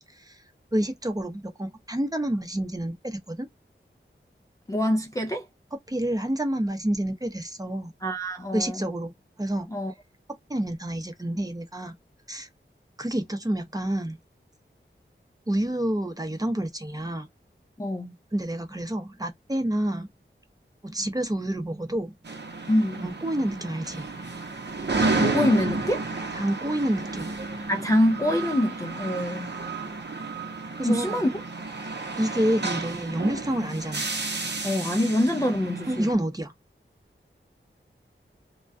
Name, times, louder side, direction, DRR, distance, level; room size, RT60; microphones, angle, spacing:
voice 1, 0.7-3.5 5.9-7.9 8.5-9.1 9.4-9.7 10.5-11.9 12.3-12.5 13.0-14.2 15.5-17.3 18.3-20.1 20.8-22.2 23.0-24.1 26.3-27.3 30.8-31.3 32.2-34.0 35.9-36.5, right 1 dB, 20° right, 0.6 m, -28 dB
voice 2, 4.7-5.4 8.0-8.8 9.7-9.9 17.8-18.1 22.7-23.0 25.2-26.0 27.7-29.5 30.8-31.3 34.6-36.1, left 1 dB, 15° left, 0.4 m, -25 dB
sound 1, 22.2-36.1, right 3 dB, 55° right, 0.7 m, -31 dB
2.2 x 2.2 x 2.5 m
wide cardioid pair, 70°, 21 cm